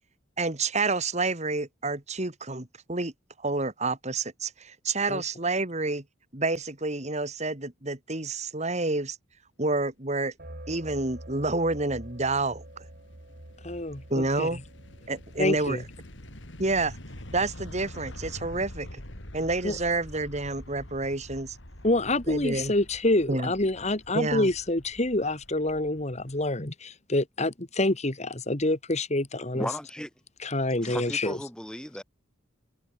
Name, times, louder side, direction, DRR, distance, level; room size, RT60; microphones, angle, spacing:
voice 1, 0.4-3.1 3.4-6.0 6.3-9.2 9.6-10.3 10.7-12.6 14.1-14.6 15.1-15.8 16.6-17.0 17.3-19.0 19.3-21.6 22.3-22.7 23.3-23.5 24.1-24.5, right 3 dB, 35° right, 2.7 m, -29 dB
sound 1, 10.4-16.9, right 1 dB, 50° right, 3.7 m, -47 dB
sound 2, 11.0-26.6, left 1 dB, 65° left, 5.2 m, -46 dB
voice 2, 13.6-14.5 15.4-15.8 19.6-19.8 21.8-29.7 30.4-31.4, left 2 dB, 35° left, 2.2 m, -27 dB
voice 3, 29.5-30.1 30.8-32.0, equal, 5° left, 3.9 m, -35 dB
head